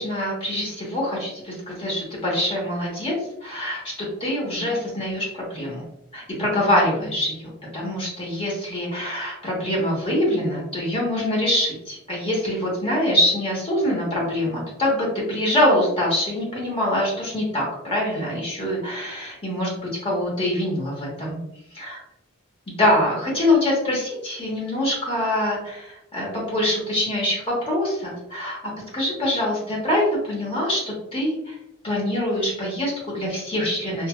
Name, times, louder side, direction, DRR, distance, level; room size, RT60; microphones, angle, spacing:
voice 1, 0.0-3.1 3.4-5.8 6.1-21.4 21.8-21.9 22.8-28.6 28.9-31.5 31.8-34.1, left 1 dB, 25° left, -3 dB, 1.0 m, -24 dB
3.2 x 2.2 x 2.3 m, 0.81 s
head